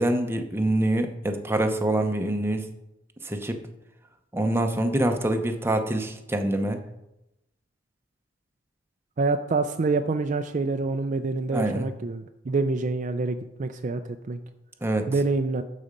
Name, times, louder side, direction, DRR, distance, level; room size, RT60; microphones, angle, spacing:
voice 1, 0.0-2.6 3.2-3.6 4.3-6.8 11.5-11.9 14.8-15.1, right 1 dB, 15° right, 5 dB, 0.7 m, -25 dB
voice 2, 9.2-14.4 15.1-15.6, right 3 dB, 40° right, 7 dB, 0.4 m, -26 dB
12.0 x 4.2 x 5.1 m, 0.88 s
head